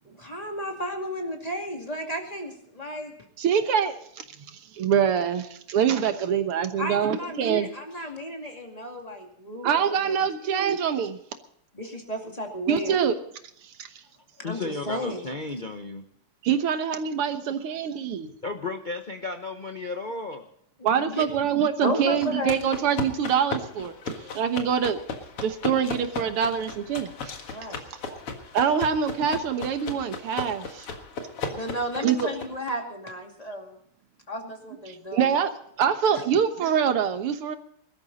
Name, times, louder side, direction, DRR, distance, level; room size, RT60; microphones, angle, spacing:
voice 1, 0.0-3.1 6.8-10.2 11.7-12.9 14.4-15.3 20.9-21.2 21.8-22.6 27.5-27.9 31.5-33.8 34.3-35.3 36.1-36.2, equal, 15° left, 2 dB, 2.4 m, -33 dB
voice 2, 3.4-7.7 9.6-11.2 12.7-13.1 13.6-14.0 16.4-18.3 20.8-25.0 25.4-27.3 27.9-28.0 28.5-30.9 32.0-32.3 34.9-35.5 35.8-37.6, right 7 dB, 80° right, 9 dB, 2.1 m, -25 dB
voice 3, 14.4-16.0 18.4-20.5, left 3 dB, 65° left, 4 dB, 0.4 m, -33 dB
sound 1, 22.2-32.7, left 4 dB, 85° left, 2.8 m, -36 dB
21.0 x 13.0 x 4.1 m, 0.69 s
omnidirectional pair, 2.4 m